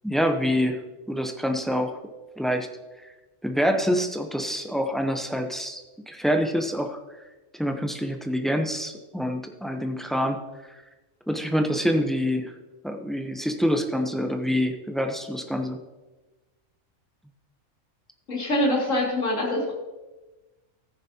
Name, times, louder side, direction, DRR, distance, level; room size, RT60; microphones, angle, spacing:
voice 1, 0.0-0.8 1.1-2.0 2.4-2.7 3.4-7.0 7.5-10.4 11.3-12.5 12.8-15.8, equal, ahead, 4 dB, 0.5 m, -26 dB
voice 2, 18.3-19.7, left 1 dB, 75° left, -2 dB, 2.8 m, -24 dB
14.5 x 9.9 x 2.8 m, 1.1 s
omnidirectional pair, 1.3 m